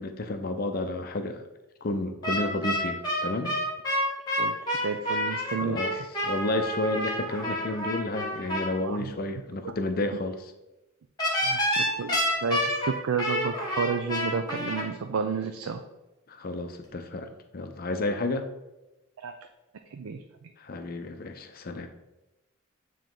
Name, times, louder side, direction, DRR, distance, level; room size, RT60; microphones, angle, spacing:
voice 1, 0.0-1.4 1.8-3.5 5.6-5.9 6.2-10.5 16.3-18.5 20.6-21.9, left 2 dB, 40° left, 7 dB, 0.5 m, -31 dB
sound 1, 2.2-8.7 11.2-14.8, equal, 20° left, 1.2 m, -28 dB
voice 2, 4.8-6.1 8.8-9.1 9.6-9.7 11.4-15.8 19.2-19.3 19.9-20.2, right 5 dB, 75° right, 6 dB, 0.4 m, -31 dB
9.0 x 3.1 x 3.8 m, 1.0 s
head